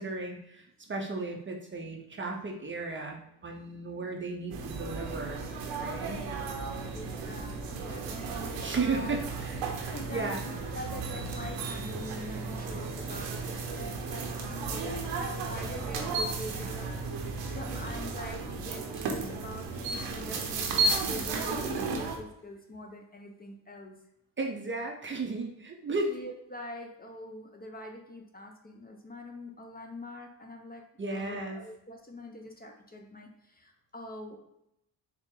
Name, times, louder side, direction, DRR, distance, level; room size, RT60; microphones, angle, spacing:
voice 1, 0.0-5.5 5.8-6.3 8.6-10.4 11.7-11.8 20.3-20.4 24.4-26.2 31.0-31.6, right 3 dB, 25° right, 1 dB, 0.6 m, -35 dB
sound 1, 4.5-22.2, right 3 dB, 75° right, 0.8 m, -34 dB
voice 2, 6.9-9.2 9.9-16.9 17.6-24.0 26.1-30.8 31.1-34.4, left 1 dB, 20° left, 2 dB, 0.6 m, -44 dB
4.2 x 2.1 x 3.7 m, 0.79 s
supercardioid pair, 60°, 44 cm